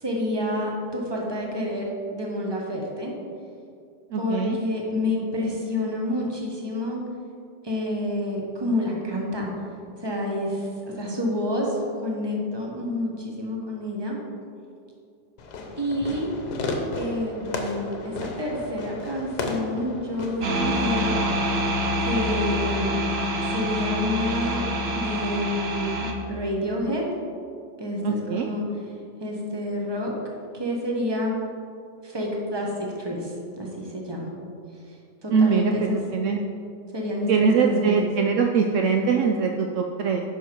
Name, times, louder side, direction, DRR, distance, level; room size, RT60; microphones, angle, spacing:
voice 1, 0.0-3.1 4.2-7.0 7.6-9.5 10.0-14.2 15.8-16.3 16.9-21.2 22.0-22.9 23.4-24.6 24.9-27.0 27.8-28.6 29.2-30.1 30.5-31.3 32.0-32.7 33.0-34.3 35.2-36.0 36.9-38.1, left 1 dB, 15° right, -1 dB, 1.1 m, -28 dB
voice 2, 4.1-4.6 28.0-28.5 35.3-36.4 37.3-40.2, right 5 dB, 75° right, 3 dB, 0.7 m, -22 dB
Fireworks, 15.4-20.5, left 3 dB, 75° left, 1.4 m, -33 dB
sound 1, 20.4-26.1, equal, 45° right, 0.9 m, -26 dB
9.5 x 5.9 x 4.5 m, 2.4 s
omnidirectional pair, 1.8 m